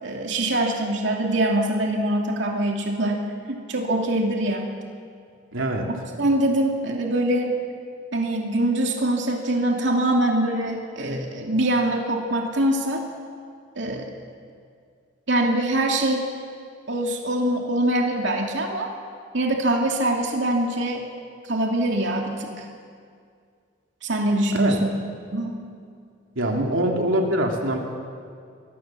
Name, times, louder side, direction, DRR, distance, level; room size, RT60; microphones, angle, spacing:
voice 1, 0.0-3.2 3.5-4.7 6.2-7.5 8.1-13.0 13.8-14.1 15.3-16.2 16.9-18.9 19.3-21.0 21.4-22.7 24.0-24.9 25.3-25.7, right 1 dB, 65° right, 0 dB, 2.7 m, -23 dB
voice 2, 5.5-5.9 24.5-24.8 26.3-27.8, right 1 dB, 85° right, 1 dB, 2.8 m, -23 dB
25.0 x 20.5 x 7.6 m, 2.2 s
head